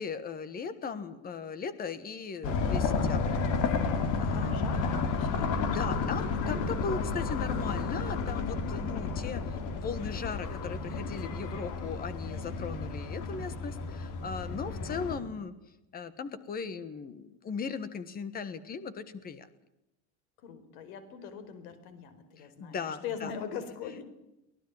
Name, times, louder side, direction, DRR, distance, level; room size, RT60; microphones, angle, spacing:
voice 1, 0.0-3.3 4.2-4.6 5.7-9.4 9.7-15.5 15.9-19.5 22.4-23.3, left 5 dB, 20° left, 14 dB, 1.5 m, -38 dB
sound 1, 2.4-15.1, left 4 dB, 45° left, 2.9 m, -31 dB
voice 2, 3.9-6.2 9.2-9.7 14.6-15.4 20.4-24.0, left 7 dB, 85° left, 12 dB, 4.5 m, -43 dB
24.0 x 18.5 x 7.3 m, 0.91 s
cardioid pair, 170°, 42 cm